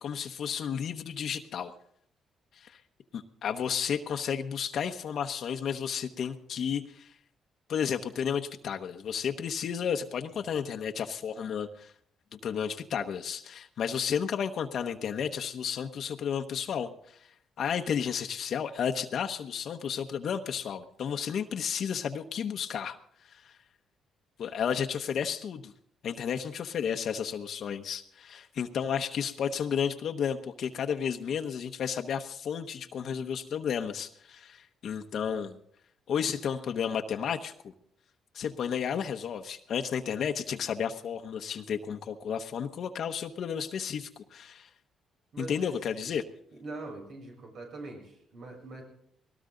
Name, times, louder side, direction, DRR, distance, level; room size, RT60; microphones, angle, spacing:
voice 1, 0.0-1.7 2.5-2.8 3.1-7.1 7.7-11.9 12.3-17.3 17.6-23.0 23.2-23.5 24.4-25.7 26.0-35.6 36.1-37.7 38.3-44.7 45.4-46.2, left 7 dB, 65° left, 5 dB, 1.0 m, -32 dB
voice 2, 45.3-45.7 46.5-48.8, right 2 dB, 70° right, -1 dB, 7.5 m, -43 dB
20.0 x 18.5 x 3.9 m, 0.68 s
cardioid pair, 90°, 0 cm